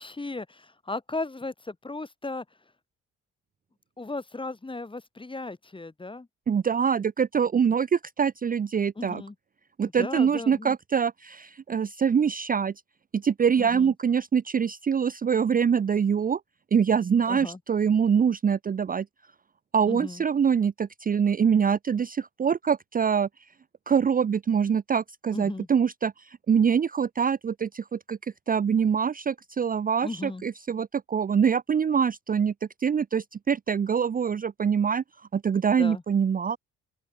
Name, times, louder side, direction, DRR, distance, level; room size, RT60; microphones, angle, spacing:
voice 1, 0.0-2.4 4.0-6.3 9.0-9.3 10.0-10.8 13.6-13.9 17.3-17.6 19.9-20.2 25.3-25.7 30.0-30.4 35.8-36.0, left 3 dB, 15° left, 2.3 m, -36 dB
voice 2, 6.5-9.2 9.8-12.7 13.1-16.4 16.7-19.1 19.7-23.3 23.9-35.0 35.3-36.6, right 7 dB, 30° right, 0.6 m, -24 dB
open air
cardioid pair, 90°, 30 cm